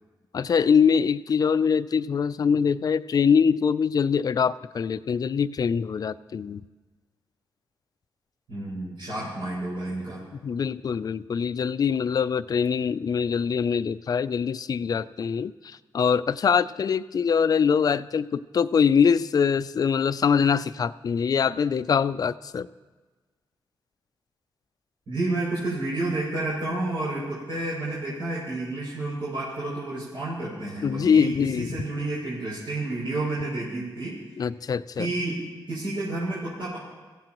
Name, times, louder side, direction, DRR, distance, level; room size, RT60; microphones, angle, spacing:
voice 1, 0.3-6.6 10.4-22.7 30.8-31.8 34.4-35.1, left 6 dB, 50° left, 14 dB, 0.4 m, -23 dB
voice 2, 8.5-10.2 25.1-34.2 35.0-36.8, right 2 dB, 80° right, -7 dB, 6.4 m, -30 dB
25.0 x 16.0 x 3.0 m, 1.3 s
wide cardioid pair, 125°, 8 cm